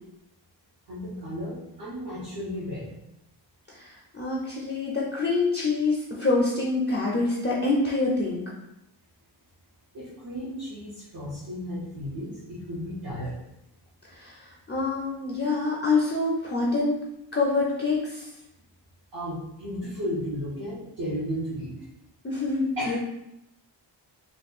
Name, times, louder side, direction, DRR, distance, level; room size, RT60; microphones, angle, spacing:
voice 1, 0.9-3.0 9.9-13.4 19.1-21.8 22.8-23.0, equal, 50° right, -9 dB, 1.1 m, -34 dB
voice 2, 3.7-8.4 14.1-17.0 17.3-18.3 22.2-23.0, left 3 dB, 25° left, -4 dB, 0.5 m, -26 dB
3.2 x 2.3 x 4.2 m, 0.85 s
wide cardioid pair, 135°, 46 cm